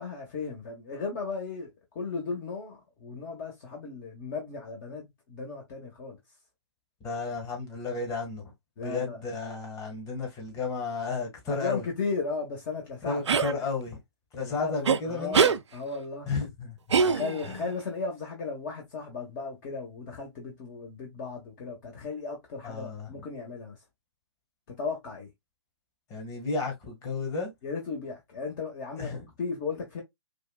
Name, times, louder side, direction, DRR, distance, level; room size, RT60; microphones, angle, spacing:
voice 1, 0.0-6.2 8.8-9.6 11.5-13.7 14.4-16.3 17.0-23.8 24.7-25.3 27.6-30.0, left 4 dB, 40° left, 1.4 m, -36 dB
voice 2, 7.0-8.4 8.8-11.8 13.0-14.0 14.3-15.5 16.3-17.0 17.5-17.6 22.6-23.2 26.1-27.5 29.0-29.3, left 4 dB, 25° left, 1.7 m, -33 dB
sound 1, 13.3-13.5 14.9-15.0 15.3-15.6 16.9-17.6, right 6 dB, 85° right, 0.5 m, -22 dB
4.8 x 2.5 x 2.4 m
hypercardioid pair, 135°, 14 cm